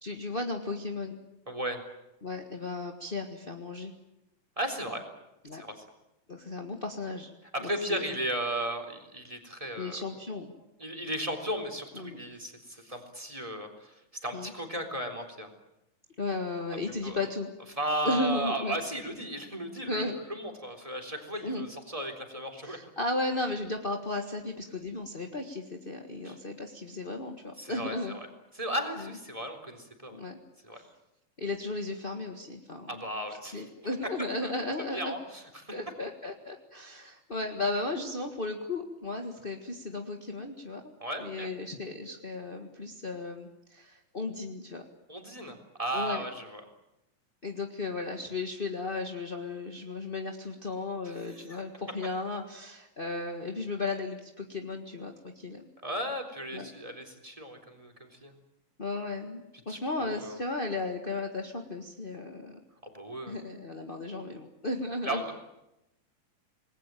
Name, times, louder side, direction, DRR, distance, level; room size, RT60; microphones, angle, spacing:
voice 1, 0.0-1.2 2.2-3.9 5.4-5.6 6.3-7.3 7.6-8.0 9.8-10.5 11.9-12.2 14.3-14.5 16.2-17.5 18.0-18.8 19.9-20.2 21.4-21.7 22.6-28.2 29.0-29.1 30.1-30.4 30.7-30.9 31.4-35.1 35.7-40.9 41.2-44.8 45.9-46.2 47.4-55.7 56.5-56.7 58.8-62.6 63.3-65.2, left 2 dB, 30° left, 3 dB, 1.0 m, -35 dB
voice 2, 1.5-1.8 4.6-5.0 5.5-5.8 7.5-10.0 10.8-13.9 14.2-15.5 16.7-16.8 17.0-17.2 17.8-20.0 20.3-22.8 26.2-26.4 27.6-28.3 28.5-30.2 30.6-30.8 32.9-33.7 34.4-34.5 34.9-35.8 41.0-41.5 45.1-46.6 51.0-51.6 55.8-58.3 59.7-60.4 62.8-63.4 65.0-65.4, right 1 dB, 10° right, 4 dB, 3.6 m, -35 dB
28.0 x 20.5 x 9.1 m, 0.90 s
omnidirectional pair, 3.8 m